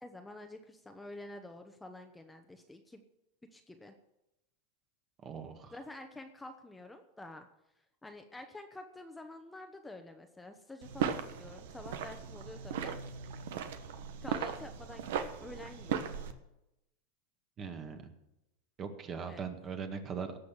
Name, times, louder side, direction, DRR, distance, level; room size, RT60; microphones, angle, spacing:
voice 1, 0.0-3.0 3.5-3.9 5.7-7.5 8.0-13.0 14.2-16.1 19.3-19.4, left 2 dB, 10° left, 5 dB, 1.0 m, -48 dB
voice 2, 5.2-5.7 17.6-18.1 18.8-20.4, right 6 dB, 30° right, 7 dB, 1.8 m, -40 dB
sound 1, 10.8-16.3, right 8 dB, 75° right, 1.2 m, -38 dB
17.5 x 6.5 x 7.2 m, 0.90 s
supercardioid pair, 125°, 0 cm